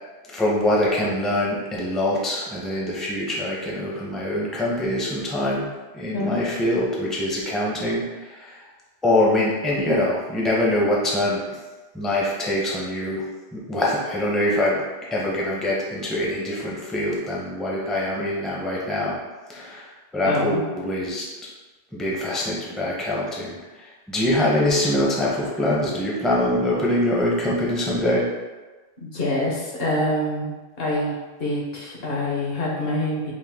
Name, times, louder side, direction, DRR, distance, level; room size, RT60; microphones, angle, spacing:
voice 1, 0.3-8.6 9.0-11.4 11.9-13.2 13.5-14.8 15.1-19.2 19.5-21.2 21.9-28.3, left 1 dB, ahead, -4 dB, 0.5 m, -24 dB
voice 2, 6.1-6.4 20.2-20.6 29.0-30.5 30.8-31.1 31.4-33.3, left 1 dB, 65° left, -4 dB, 1.1 m, -25 dB
5.0 x 2.1 x 3.5 m, 1.2 s
omnidirectional pair, 1.1 m